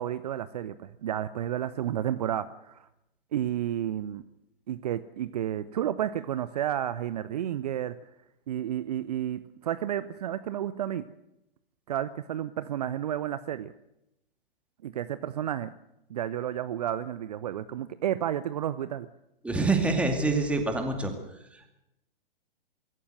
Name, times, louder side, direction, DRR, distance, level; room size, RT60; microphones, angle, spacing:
voice 1, 0.0-2.9 3.3-4.2 4.7-8.0 8.5-11.0 11.9-13.7 14.8-15.7 16.1-19.1, right 11 dB, 45° right, 14 dB, 0.8 m, -31 dB
voice 2, 19.4-21.1, right 3 dB, 5° right, 4 dB, 2.5 m, -26 dB
23.5 x 14.0 x 7.8 m, 0.88 s
figure-of-eight pair, 115°, 29 cm